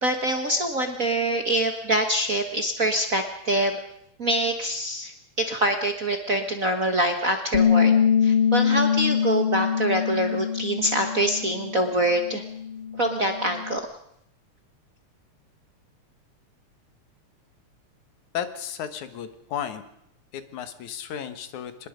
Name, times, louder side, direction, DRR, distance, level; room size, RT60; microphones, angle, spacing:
voice 1, 0.0-3.8 4.2-5.1 5.4-7.9 8.2-12.4 13.0-13.8, right 1 dB, 40° right, 5 dB, 1.3 m, -25 dB
Bass guitar, 7.5-11.9 12.2-13.8, left 7 dB, 55° left, 0.6 m, -24 dB
voice 2, 18.3-19.8 20.3-21.9, left 9 dB, 80° left, 10 dB, 2.9 m, -34 dB
25.5 x 20.5 x 5.2 m, 0.73 s
omnidirectional pair, 3.3 m